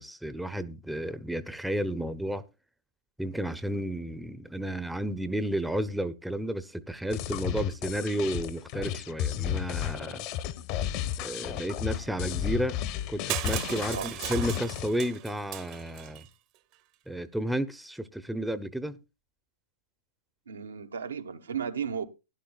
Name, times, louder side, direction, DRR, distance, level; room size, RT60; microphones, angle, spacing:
voice 1, 0.0-2.4 3.2-10.2 11.2-12.8 13.1-16.3 17.1-19.0, right 1 dB, ahead, 0.8 m, -32 dB
sound 1, 7.1-14.9, left 11 dB, 45° left, 1.1 m, -33 dB
Crushing, 13.3-16.2, right 15 dB, 40° right, 1.0 m, -37 dB
voice 2, 20.5-22.1, right 7 dB, 75° right, 1.3 m, -34 dB
16.5 x 11.0 x 2.4 m
figure-of-eight pair, 105°, 0 cm